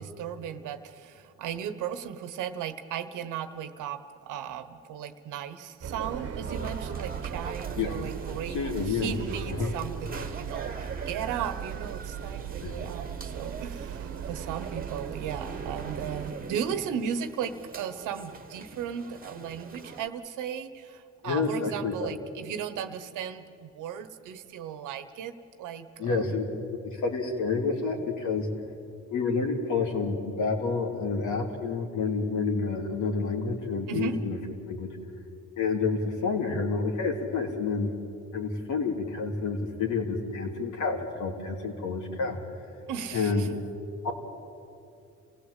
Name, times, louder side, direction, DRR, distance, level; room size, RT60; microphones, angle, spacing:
voice 1, 0.0-26.2 33.9-34.2 42.9-43.6, right 8 dB, 85° right, 11 dB, 1.2 m, -36 dB
sound 1, 5.8-16.3, right 8 dB, 55° right, 1.3 m, -38 dB
sound 2, 6.4-20.1, right 4 dB, 30° right, 1.6 m, -42 dB
voice 2, 8.5-9.1 9.5-9.7 12.6-12.8 21.2-22.1 26.0-26.4 26.8-28.5 29.1-34.4 34.7-34.9 35.6-37.9 38.3-42.4 43.1-43.5 44.0-44.1, left 4 dB, 75° left, 1 dB, 3.3 m, -29 dB
27.0 x 16.5 x 8.4 m, 2.6 s
cardioid pair, 90°, 30 cm